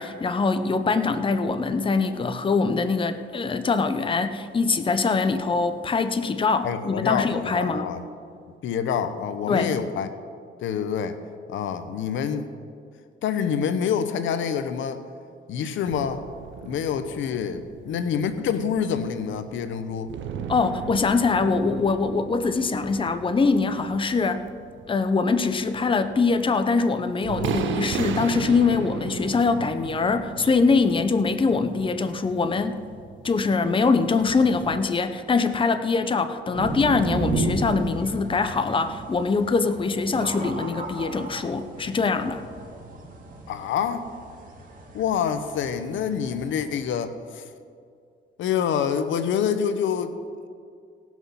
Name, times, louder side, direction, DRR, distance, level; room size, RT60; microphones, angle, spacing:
voice 1, 0.0-7.9 9.5-9.8 20.5-24.5 24.9-32.8 33.2-42.4, left 4 dB, 25° left, 9 dB, 0.8 m, -23 dB
voice 2, 6.6-8.0 8.6-10.1 10.6-11.2 11.5-12.5 13.2-15.0 15.5-16.3 16.7-20.1 43.5-44.0 44.9-47.4 48.4-50.1, left 7 dB, 75° left, 11 dB, 0.8 m, -26 dB
sound 1, 15.8-34.8, right 6 dB, 75° right, 0.9 m, -37 dB
sound 2, 36.5-46.7, right 2 dB, 45° right, 2.4 m, -34 dB
17.5 x 6.2 x 5.6 m, 2.3 s
cardioid pair, 90°, 20 cm